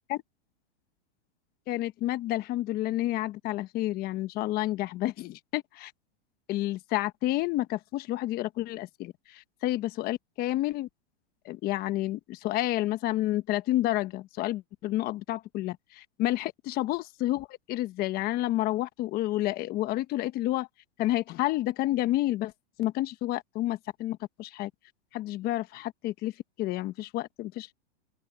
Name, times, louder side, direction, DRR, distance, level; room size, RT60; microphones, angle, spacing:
voice 1, 1.7-5.9 6.5-10.9 11.4-20.7 21.0-22.5 22.8-24.7 25.1-26.3 26.6-27.7, left 15 dB, 30° left, 1.1 m, -30 dB
open air
supercardioid pair, 145°, 32 cm